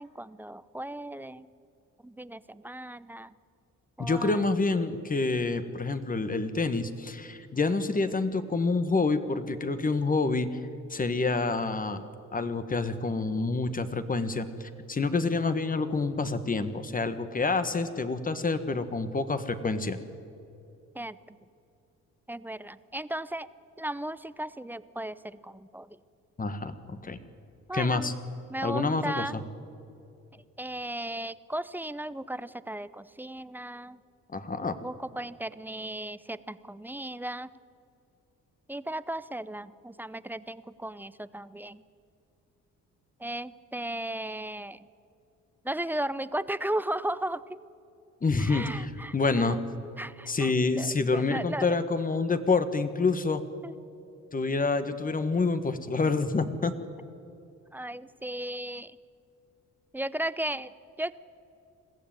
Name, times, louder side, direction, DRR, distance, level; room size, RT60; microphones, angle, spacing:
voice 1, 0.0-1.5 2.0-3.4 4.0-4.4 20.9-21.4 22.3-23.5 23.8-26.0 27.7-28.1 28.5-29.4 30.3-34.0 34.8-37.5 38.7-41.8 43.2-44.9 45.6-47.6 48.4-49.6 50.0-51.7 53.6-53.8 57.7-59.0 59.9-61.1, right 1 dB, 5° right, 16 dB, 0.6 m, -36 dB
voice 2, 4.0-10.6 10.9-12.0 12.3-20.0 26.4-27.2 27.7-28.1 28.6-29.4 34.3-34.8 48.2-49.6 50.3-53.4 54.3-56.7, left 3 dB, 30° left, 10 dB, 1.6 m, -27 dB
22.0 x 15.0 x 9.1 m, 2.7 s
cardioid pair, 90°, 30 cm